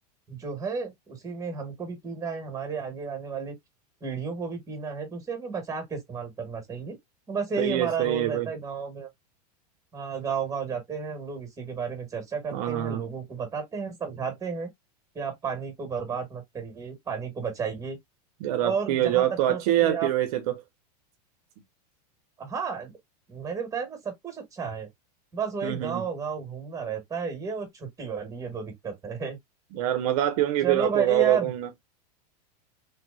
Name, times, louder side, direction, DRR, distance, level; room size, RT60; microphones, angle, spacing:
voice 1, 0.3-3.5 4.0-7.0 7.3-9.1 9.9-14.7 15.2-18.0 18.6-20.1 22.4-22.9 23.3-24.9 25.3-29.4 30.6-31.5, right 5 dB, 15° right, 1.8 m, -32 dB
voice 2, 7.6-8.5 12.5-13.0 18.4-20.6 25.6-26.0 29.7-31.7, right 12 dB, 65° right, 0.7 m, -25 dB
3.3 x 2.9 x 2.6 m
supercardioid pair, 125°, 21 cm